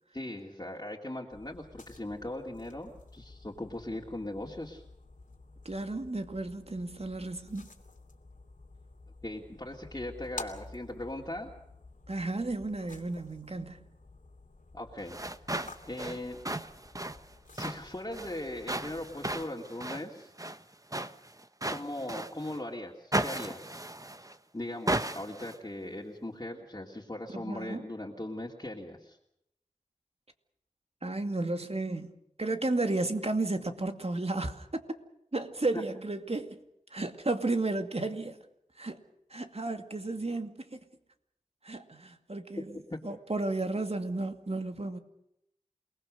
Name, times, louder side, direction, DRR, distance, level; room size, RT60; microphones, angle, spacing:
voice 1, 0.1-4.8 9.2-11.5 14.7-15.2 15.9-16.4 17.5-20.3 21.6-23.8 24.5-29.2 42.6-42.7 42.9-43.0, left 1 dB, 30° left, 3.0 m, -39 dB
sound 1, 1.3-19.4, left 3 dB, 85° left, 2.9 m, -51 dB
voice 2, 5.6-7.7 12.1-13.9 27.3-27.9 31.0-34.8 35.3-36.6 36.9-38.4 38.8-39.0 39.3-40.8 41.6-45.0, right 2 dB, 50° right, 2.3 m, -33 dB
sound 2, 15.0-22.6 23.1-24.4 24.9-25.6, right 1 dB, 25° right, 1.2 m, -36 dB
28.5 x 20.0 x 6.6 m
wide cardioid pair, 45°, 13 cm